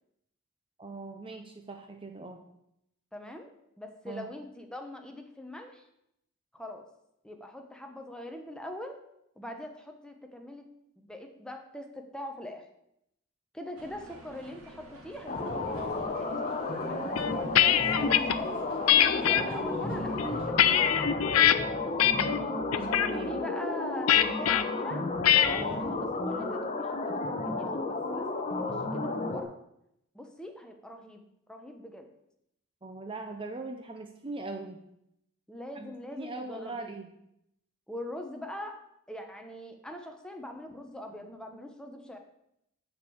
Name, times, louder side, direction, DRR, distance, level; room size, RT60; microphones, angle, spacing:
voice 1, 0.8-2.4 4.1-4.3 22.3-23.3 25.5-25.8 32.8-34.8 35.8-37.1, right 2 dB, 25° right, 5 dB, 0.7 m, -41 dB
voice 2, 3.1-3.5 3.8-5.9 6.5-6.8 7.2-9.0 9.4-10.7 11.0-12.7 13.5-17.4 17.8-18.5 18.8-21.3 23.2-25.1 25.4-29.5 30.1-32.1 35.5-36.9 37.9-38.8 39.1-42.2, left 1 dB, 5° left, 4 dB, 1.0 m, -43 dB
sound 1, 13.8-20.5, right 2 dB, 90° right, 1.6 m, -50 dB
sound 2, 15.3-29.4, left 2 dB, 35° left, 1.0 m, -32 dB
sound 3, 17.2-18.4 18.9-19.4 20.0-21.5 22.0-22.4 22.7-23.1 24.1-24.6 25.2-25.6, left 10 dB, 85° left, 0.5 m, -23 dB
6.7 x 6.6 x 7.8 m, 0.79 s
head